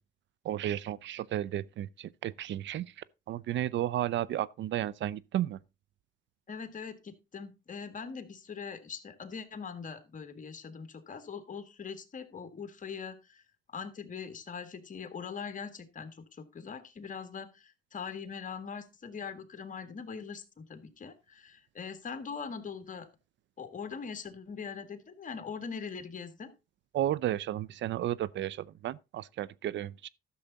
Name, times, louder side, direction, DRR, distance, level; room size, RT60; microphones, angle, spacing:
voice 1, 0.4-5.6 26.9-30.1, right 12 dB, 70° right, 0.5 m, -33 dB
voice 2, 6.5-13.4 13.7-23.1 23.6-26.5, left 6 dB, 40° left, 1.8 m, -42 dB
12.0 x 7.0 x 4.0 m
cardioid pair, 90°, 20 cm